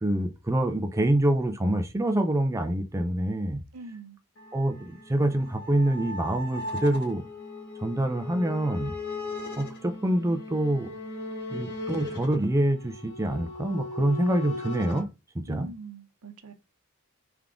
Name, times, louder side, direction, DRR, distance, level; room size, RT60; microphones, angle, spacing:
voice 1, 0.0-3.6 4.5-7.2 7.8-8.9 9.6-10.9 11.5-15.1 15.3-15.7, right 1 dB, 15° right, 0.5 m, -26 dB
voice 2, 3.7-4.2 15.5-16.5, right 3 dB, 80° right, 0.8 m, -43 dB
sound 1, 4.4-15.0, left 2 dB, 50° left, 1.9 m, -38 dB
3.6 x 3.5 x 3.6 m
head